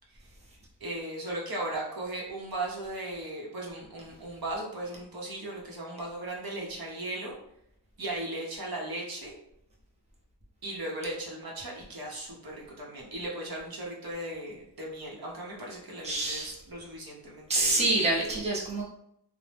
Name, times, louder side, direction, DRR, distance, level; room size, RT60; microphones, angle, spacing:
voice 1, 0.8-7.4 8.0-9.3 10.6-17.9, right 1 dB, 60° right, -3 dB, 0.8 m, -37 dB
voice 2, 16.0-16.5 17.5-18.8, right 2 dB, 15° right, -4 dB, 0.7 m, -26 dB
2.7 x 2.0 x 3.3 m, 0.75 s
wide cardioid pair, 90°, 42 cm